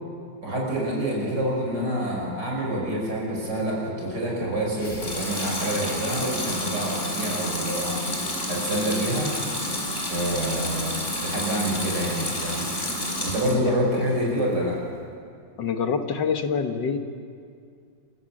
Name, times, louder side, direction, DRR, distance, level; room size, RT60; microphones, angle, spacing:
voice 1, 0.4-8.0 8.5-9.3 10.0-12.7 13.2-14.8, right 1 dB, 60° right, -2 dB, 6.5 m, -27 dB
Water tap faucet / Sink (filling or washing) / Liquid, 4.7-13.7 14.1-14.8, left 1 dB, 25° left, 3.9 m, -30 dB
voice 2, 13.4-14.1 15.6-17.0, left 6 dB, 70° left, 7 dB, 1.9 m, -27 dB
28.5 x 15.0 x 7.6 m, 2.3 s
omnidirectional pair, 2.1 m